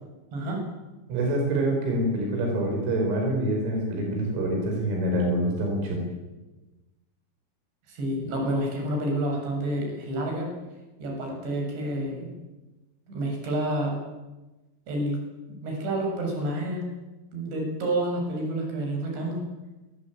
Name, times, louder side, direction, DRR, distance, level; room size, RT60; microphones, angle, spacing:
voice 1, 1.1-6.0, right 1 dB, 85° right, 1 dB, 8.1 m, -26 dB
voice 2, 7.9-10.5 11.0-12.3 13.1-14.0 14.9-15.2 15.6-16.8 17.3-19.4, right 1 dB, 55° right, 1 dB, 9.4 m, -29 dB
27.5 x 22.5 x 9.1 m, 1.1 s
omnidirectional pair, 6.0 m